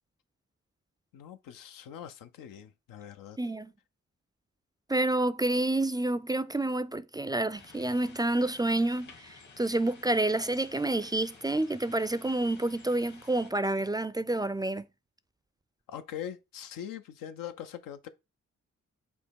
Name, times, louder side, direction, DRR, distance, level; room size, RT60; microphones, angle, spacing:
voice 1, 1.1-3.4 15.9-18.1, left 10 dB, 90° left, 0.5 m, -42 dB
voice 2, 3.4-3.7 4.9-14.8, right 2 dB, 15° right, 0.3 m, -29 dB
sound 1, 7.5-13.5, left 4 dB, 65° left, 1.5 m, -54 dB
5.2 x 2.1 x 4.5 m
supercardioid pair, 40°, 32 cm